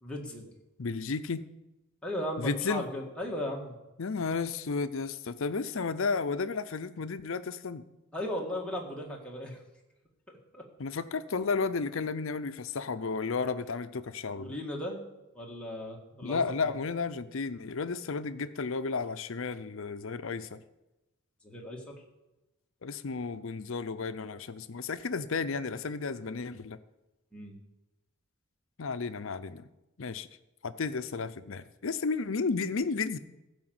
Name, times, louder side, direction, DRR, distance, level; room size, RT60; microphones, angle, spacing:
voice 1, 0.0-0.5 2.0-3.8 8.1-9.6 10.5-10.6 14.3-15.0 15.4-16.7 21.4-22.0 27.3-27.6, left 1 dB, 5° left, -2 dB, 1.7 m, -36 dB
voice 2, 0.8-1.4 2.4-2.9 4.0-7.8 10.8-14.5 16.2-20.6 22.8-26.8 28.8-29.7 30.0-30.3 30.6-33.2, left 4 dB, 65° left, 12 dB, 0.6 m, -33 dB
15.0 x 5.1 x 7.8 m, 0.99 s
head